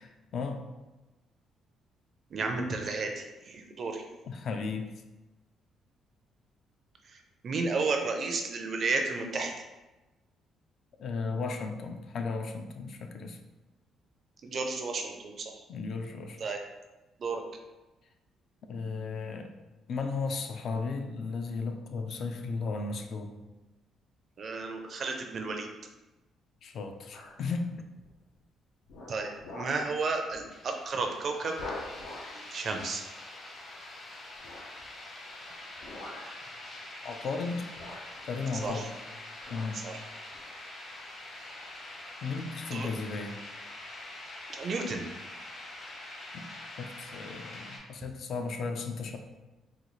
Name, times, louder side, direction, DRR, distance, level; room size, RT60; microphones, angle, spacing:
voice 1, 0.0-0.6 4.3-4.9 11.0-13.4 15.7-16.4 18.7-19.5 19.9-23.3 26.6-27.6 37.0-37.7 38.2-38.9 39.5-39.8 42.2-43.4 46.3-46.4 46.8-49.2, left 4 dB, 55° left, 5 dB, 0.4 m, -35 dB
voice 2, 2.3-4.0 7.4-9.5 14.4-15.4 16.4-16.6 17.2-17.4 24.4-25.7 29.1-31.5 32.3-33.0 38.6-38.9 39.8-40.0 42.7-42.9 44.5-45.0, right 3 dB, 45° right, 4 dB, 0.4 m, -32 dB
sound 1, 27.1-27.5 28.0-28.4 28.9-29.9 30.3-30.5 30.9-31.0 31.5-32.5 34.4-34.9 35.8-36.4 37.3-37.5 37.8-39.1 39.4-39.8 40.3-40.4, left 2 dB, 90° left, 0.7 m, -44 dB
sound 2, 30.5-47.8, left 1 dB, 40° left, 0.8 m, -45 dB
3.9 x 2.3 x 3.0 m, 1.1 s
cardioid pair, 135°, 0 cm